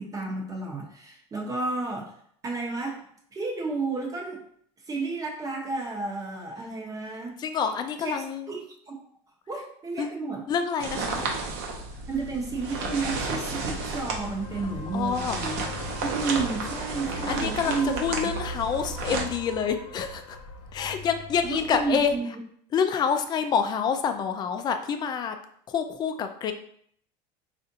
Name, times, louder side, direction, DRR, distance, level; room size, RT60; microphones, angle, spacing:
voice 1, 0.0-2.1 2.4-3.0 3.3-4.4 4.9-7.3 8.0-8.6 8.9-9.0 9.5-10.4 12.1-15.7 16.0-18.3 21.4-22.3, right 4 dB, 25° right, -1 dB, 0.9 m, -31 dB
voice 2, 7.4-8.5 10.0-10.1 10.5-11.3 14.9-15.4 17.1-20.4 20.7-22.1 22.7-25.4 25.7-26.5, left 7 dB, 30° left, 8 dB, 0.3 m, -27 dB
sound 1, 10.8-19.2, right 3 dB, 70° right, 0.8 m, -33 dB
sound 2, 12.6-22.2, left 1 dB, 85° left, 0.7 m, -41 dB
4.8 x 2.5 x 2.7 m, 0.64 s
cardioid pair, 140°, 15 cm